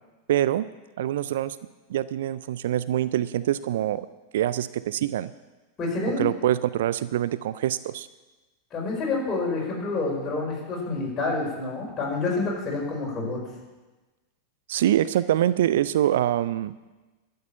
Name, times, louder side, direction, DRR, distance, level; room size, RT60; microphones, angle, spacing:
voice 1, 0.3-0.7 1.0-1.6 1.9-4.1 4.3-5.3 6.2-8.1 14.7-16.7, right 12 dB, 60° right, 16 dB, 0.4 m, -24 dB
voice 2, 5.8-6.2 8.7-13.4, left 3 dB, 25° left, -2 dB, 5.0 m, -28 dB
12.5 x 6.8 x 8.7 m, 1.2 s
figure-of-eight pair, 90°, 0 cm